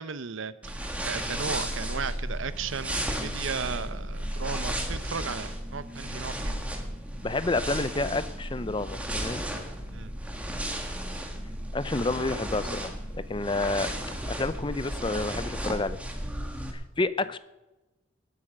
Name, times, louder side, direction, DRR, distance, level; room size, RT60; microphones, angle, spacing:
voice 1, 0.0-6.6 9.9-10.1, right 5 dB, 65° right, 14 dB, 0.8 m, -35 dB
sound 1, 0.6-16.7, right 1 dB, 5° right, 1.7 m, -34 dB
voice 2, 7.2-9.4 11.7-13.9 14.3-16.0 16.7-17.4, left 2 dB, 25° left, 14 dB, 0.5 m, -29 dB
19.5 x 8.4 x 6.5 m, 1.0 s
head